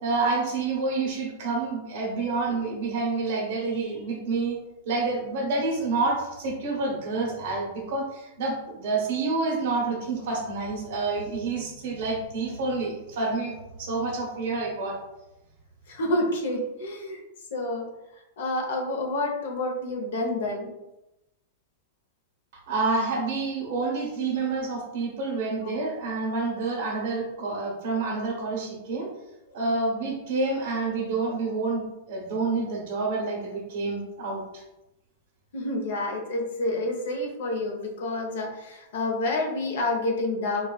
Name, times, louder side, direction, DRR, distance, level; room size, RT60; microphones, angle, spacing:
voice 1, 0.0-4.6 4.8-15.0 22.7-29.1 29.5-34.4, right 3 dB, 55° right, -1 dB, 1.0 m, -28 dB
voice 2, 15.9-17.2 17.5-17.8 18.4-20.7 25.6-25.7 35.5-40.7, left 2 dB, 70° left, 1 dB, 0.7 m, -28 dB
4.1 x 2.3 x 2.3 m, 0.96 s
supercardioid pair, 165°, 0 cm